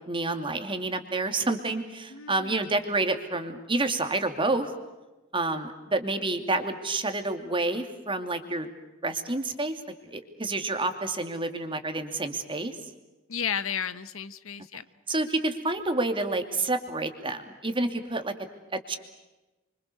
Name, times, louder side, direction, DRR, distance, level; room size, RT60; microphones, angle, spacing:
voice 1, 0.1-4.7 5.3-8.7 9.0-12.7 15.1-18.3 18.7-19.0, right 2 dB, 25° right, 6 dB, 2.7 m, -29 dB
voice 2, 2.1-2.6 13.3-14.8, left 8 dB, 85° left, 13 dB, 1.2 m, -33 dB
29.5 x 25.0 x 6.8 m, 1.1 s
head